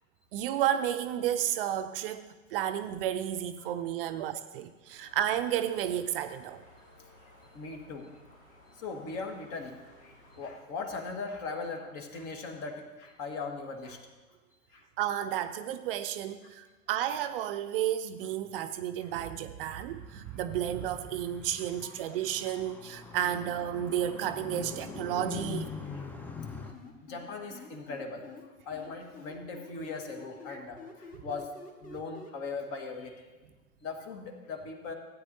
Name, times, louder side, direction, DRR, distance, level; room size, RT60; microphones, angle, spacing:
voice 1, 0.3-6.6 15.0-25.7, right 11 dB, 45° right, 10 dB, 0.5 m, -32 dB
sound 1, 4.9-10.7, left 1 dB, 80° left, 2.6 m, -58 dB
voice 2, 7.5-8.4 8.7-14.1 14.7-14.8 16.4-16.5 19.0-19.1 21.8-21.9 22.4-22.6 25.8-26.4 27.0-28.3 28.6-31.5 31.8-33.3 33.8-34.9, left 4 dB, 40° left, 4 dB, 1.6 m, -40 dB
Car, 19.8-26.7, left 5 dB, 5° left, 0.4 m, -43 dB
sound 2, 23.3-25.6 26.4-28.4 28.7-32.3, left 5 dB, 20° left, 1.4 m, -48 dB
16.0 x 9.2 x 2.7 m, 1.2 s
figure-of-eight pair, 90°, 40 cm